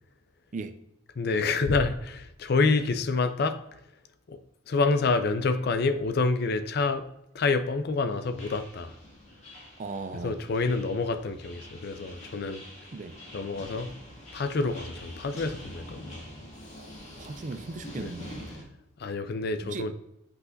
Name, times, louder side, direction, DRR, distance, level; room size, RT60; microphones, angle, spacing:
voice 1, 1.2-3.8 4.3-4.4 4.7-7.1 7.3-9.0 10.2-12.6 13.3-14.0 14.3-16.3 18.0-18.1 19.0-19.9, left 3 dB, 50° left, 0.4 m, -27 dB
sound 1, 8.1-18.6, left 1 dB, 30° left, 2.1 m, -46 dB
voice 2, 9.8-10.3 12.9-13.1 16.7-18.5 19.6-19.9, right 3 dB, 35° right, 0.4 m, -38 dB
8.0 x 5.8 x 2.6 m
head